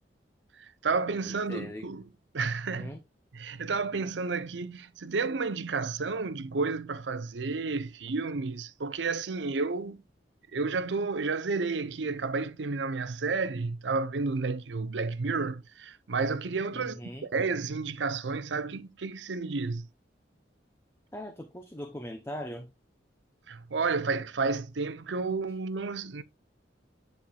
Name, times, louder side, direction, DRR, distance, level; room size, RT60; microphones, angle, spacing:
voice 1, 0.6-2.0 2.3-3.0 3.3-10.0 10.5-19.9 23.5-26.2, right 4 dB, 90° right, 0.6 m, -31 dB
voice 2, 1.5-1.9 2.8-3.0 16.7-17.3 21.1-22.7, equal, 15° left, 0.7 m, -40 dB
10.5 x 4.4 x 2.3 m
head